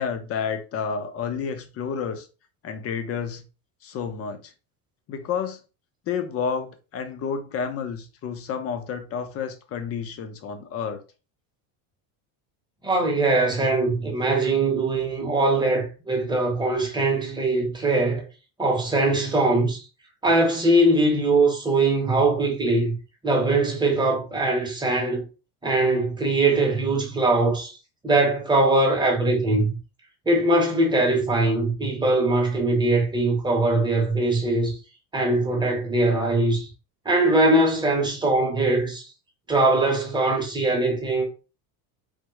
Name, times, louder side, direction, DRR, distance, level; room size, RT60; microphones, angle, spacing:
voice 1, 0.0-2.3 2.6-3.4 3.8-4.5 5.1-5.6 6.1-11.0, left 6 dB, 35° left, 0.5 m, -30 dB
voice 2, 12.8-18.2 18.6-19.8 20.2-23.0 23.2-25.2 25.6-27.8 28.0-29.7 30.3-34.8 35.1-36.7 37.0-39.1 39.5-41.2, right 2 dB, 10° right, 0.8 m, -21 dB
3.5 x 2.0 x 3.0 m
cardioid pair, 135°, 43 cm